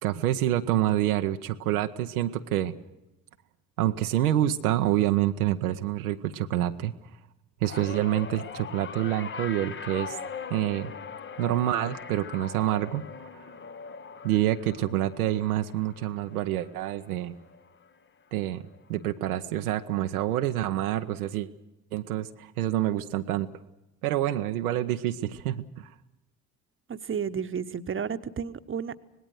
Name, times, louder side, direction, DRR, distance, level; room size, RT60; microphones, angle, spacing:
voice 1, 0.0-2.7 3.8-6.9 7.6-10.2 10.5-10.9 11.4-13.0 13.3-13.5 14.2-17.3 18.3-21.5 21.9-23.5 24.0-25.9, right 13 dB, 80° right, 7 dB, 0.7 m, -27 dB
Guitar Noise snd, 7.6-18.1 18.4-18.8 19.9-20.0, left 6 dB, 25° left, 0.8 m, -41 dB
voice 2, 26.9-29.0, right 7 dB, 30° right, 10 dB, 1.0 m, -32 dB
25.5 x 19.0 x 6.5 m, 0.96 s
figure-of-eight pair, 45°, 44 cm